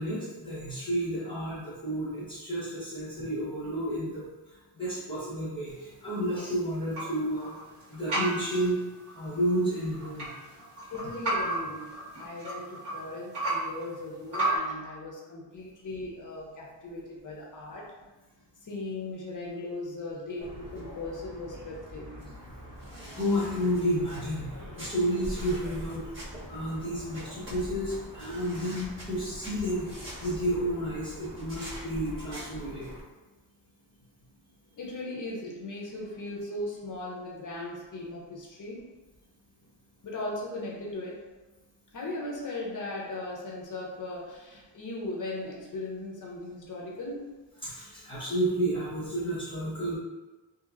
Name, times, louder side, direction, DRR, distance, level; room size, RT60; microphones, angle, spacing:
voice 1, 0.0-4.2 4.7-7.5 7.9-8.8 9.1-10.3 23.1-26.0 26.5-29.9 30.2-32.9 47.6-50.0, equal, 10° left, -10 dB, 1.2 m, -31 dB
sound 1, 5.7-14.6, right 2 dB, 65° right, 1.4 m, -35 dB
voice 2, 10.9-11.9 12.1-17.9 18.6-22.3 34.8-38.8 40.0-41.2 41.9-47.4, left 2 dB, 45° left, -3 dB, 0.6 m, -38 dB
sound 2, 20.4-33.0, equal, 25° right, 1.1 m, -43 dB
2.8 x 2.7 x 2.4 m, 1.2 s
wide cardioid pair, 135°, 44 cm